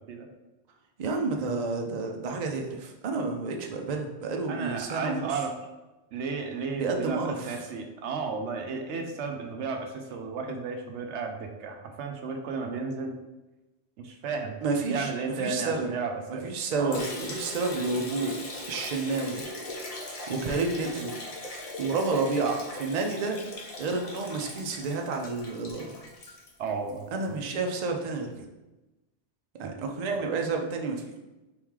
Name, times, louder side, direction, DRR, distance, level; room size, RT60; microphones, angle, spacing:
voice 1, 1.0-5.4 6.7-7.6 14.6-15.1 15.4-15.9 16.3-18.4 18.7-19.5 20.3-21.2 21.8-23.4 23.8-25.9 27.1-28.3 29.6-31.2, right 3 dB, 50° right, 3 dB, 0.5 m, -30 dB
voice 2, 4.5-5.5 6.1-13.2 14.0-14.6 14.9-16.4 16.8-17.0 26.6-27.4 29.6-29.7, right 4 dB, 90° right, 4 dB, 0.9 m, -33 dB
Liquid, 16.9-27.0, left 1 dB, 40° left, 0.7 m, -40 dB
4.2 x 3.1 x 3.6 m, 1.1 s
omnidirectional pair, 1.1 m